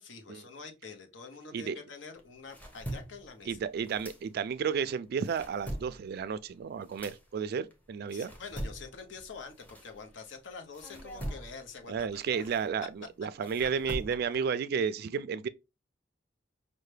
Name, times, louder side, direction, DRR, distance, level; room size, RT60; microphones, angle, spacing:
voice 1, 0.0-3.6 8.1-12.5 13.6-13.7, left 4 dB, 75° left, 0.8 m, -46 dB
sound 1, 2.2-4.7 5.1-10.4 10.7-14.5, right 1 dB, 10° left, 0.8 m, -43 dB
voice 2, 3.5-8.3 11.9-15.5, right 6 dB, 55° right, 0.3 m, -32 dB
5.4 x 2.1 x 3.2 m
head